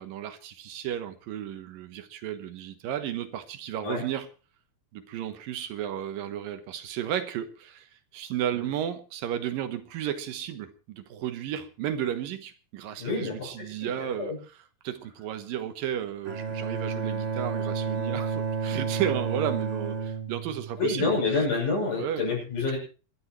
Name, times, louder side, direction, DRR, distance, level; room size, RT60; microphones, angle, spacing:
voice 1, 0.0-4.3 4.9-14.6 14.8-21.4 22.0-22.3, right 10 dB, 75° right, 2.8 m, -33 dB
voice 2, 13.0-13.9 14.2-14.4 20.8-22.8, left 4 dB, 60° left, 8.9 m, -28 dB
Bowed string instrument, 16.2-21.3, right 6 dB, 40° right, 3.9 m, -31 dB
26.5 x 12.5 x 3.1 m
omnidirectional pair, 4.1 m